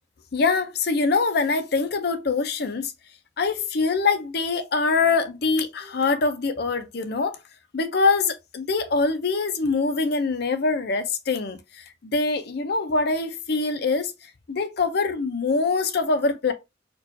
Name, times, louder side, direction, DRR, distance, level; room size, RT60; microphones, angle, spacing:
voice 1, 0.3-2.9 3.4-7.4 7.7-11.6 12.0-14.1 14.5-16.5, left 4 dB, 60° left, 0.6 m, -24 dB
4.4 x 2.4 x 2.6 m
head